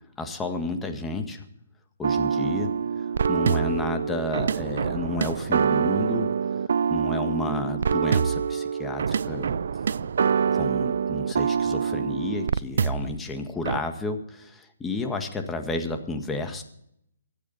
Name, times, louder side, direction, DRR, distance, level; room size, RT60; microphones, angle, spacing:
voice 1, 0.2-1.4 2.0-2.7 3.3-6.3 6.9-9.5 10.5-16.6, left 2 dB, 10° left, 5 dB, 1.8 m, -31 dB
sound 1, 2.0-13.2 13.6-13.8, right 6 dB, 65° right, 0.5 m, -25 dB
24.5 x 8.5 x 4.2 m, 0.73 s
hypercardioid pair, 140°, 0 cm